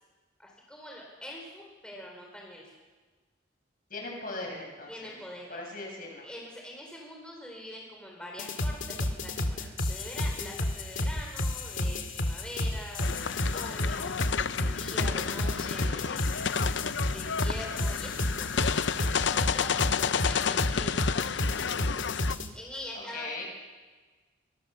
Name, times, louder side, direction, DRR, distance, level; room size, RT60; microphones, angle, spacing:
voice 1, 0.4-2.7 4.9-5.6 6.2-16.3 17.1-18.7 19.0-21.3 22.5-23.4, left 1 dB, 5° left, -1 dB, 4.1 m, -44 dB
voice 2, 3.9-5.1 5.5-6.3 23.1-23.4, left 2 dB, 45° left, 1 dB, 7.7 m, -39 dB
sound 1, 8.4-22.5, left 1 dB, 90° left, 2.4 m, -31 dB
sound 2, 13.0-22.3, left 6 dB, 75° left, 0.6 m, -31 dB
24.5 x 24.0 x 7.0 m, 1.3 s
head